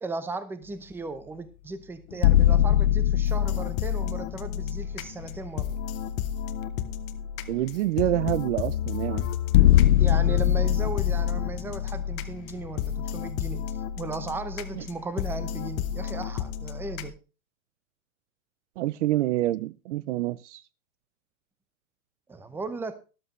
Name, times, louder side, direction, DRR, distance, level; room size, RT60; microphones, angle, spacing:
voice 1, 0.0-5.8 10.0-17.2 22.3-22.9, right 3 dB, 5° right, 0.7 m, -36 dB
sound 1, 2.1-5.7 6.1-6.2 9.5-13.1, left 12 dB, 50° left, 0.5 m, -23 dB
sound 2, 3.2-17.1, left 9 dB, 30° left, 1.0 m, -33 dB
voice 2, 7.5-9.3 14.7-14.8 18.8-20.6, right 15 dB, 55° right, 0.6 m, -27 dB
13.0 x 11.5 x 3.2 m
hypercardioid pair, 135°, 45 cm